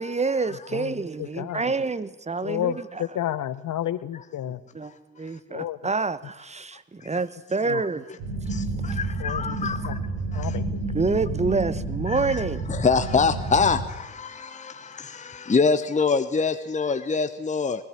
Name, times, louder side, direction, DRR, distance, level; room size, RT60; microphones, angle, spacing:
voice 1, 0.0-2.8 4.7-8.0 10.9-12.6, right 4 dB, 20° right, 1.1 m, -27 dB
voice 2, 0.7-1.6 2.4-4.6 5.5-5.8 7.6-7.8 9.2-9.5 9.9-10.0 10.3-10.8, left 12 dB, 55° left, 1.0 m, -31 dB
sound 1, 8.2-13.9, right 2 dB, 80° right, 4.9 m, -30 dB
voice 3, 9.3-9.7 12.8-13.8 15.5-17.8, left 5 dB, 20° left, 1.0 m, -22 dB
20.0 x 14.5 x 9.0 m
hypercardioid pair, 50°, 36 cm